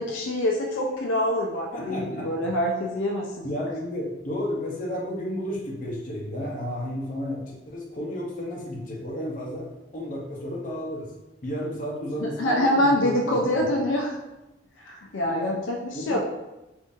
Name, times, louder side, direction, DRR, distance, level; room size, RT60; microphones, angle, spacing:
voice 1, 0.0-3.4 12.2-14.1 14.8-16.2, left 1 dB, 85° left, 0 dB, 0.5 m, -25 dB
voice 2, 1.7-2.3 3.4-9.7 9.9-11.1 11.4-13.5 15.3-15.6 15.9-16.2, equal, 40° left, -3 dB, 0.7 m, -32 dB
3.7 x 2.6 x 2.5 m, 0.96 s
head